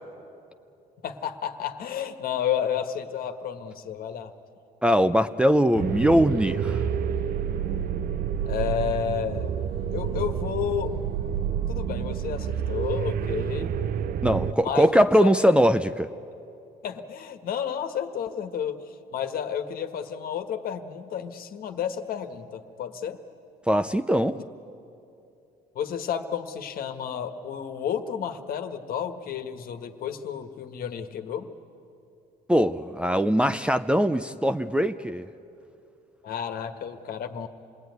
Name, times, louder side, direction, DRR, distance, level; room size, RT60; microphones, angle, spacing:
voice 1, 1.0-4.3 8.4-9.5 9.9-11.0 11.7-13.7 14.5-15.5 16.8-23.2 25.7-31.5 36.2-37.5, left 8 dB, 60° left, 7 dB, 1.6 m, -31 dB
voice 2, 4.8-6.8 14.2-16.1 23.7-24.4 32.5-35.3, equal, 5° right, 7 dB, 0.5 m, -21 dB
sound 1, 5.7-14.5, right 8 dB, 60° right, 0.7 m, -29 dB
27.0 x 20.0 x 9.5 m, 2.7 s
cardioid pair, 110°, 17 cm